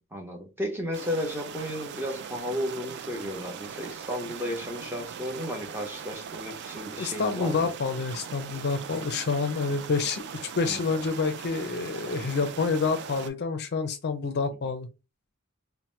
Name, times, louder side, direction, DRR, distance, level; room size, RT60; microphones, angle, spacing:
voice 1, 0.1-7.8 10.6-10.8, equal, 10° right, 0.7 m, -34 dB
sound 1, 0.9-13.3, right 7 dB, 55° right, 0.3 m, -40 dB
voice 2, 7.0-10.2 10.6-14.9, left 4 dB, 50° left, 0.4 m, -28 dB
2.8 x 2.1 x 3.1 m
head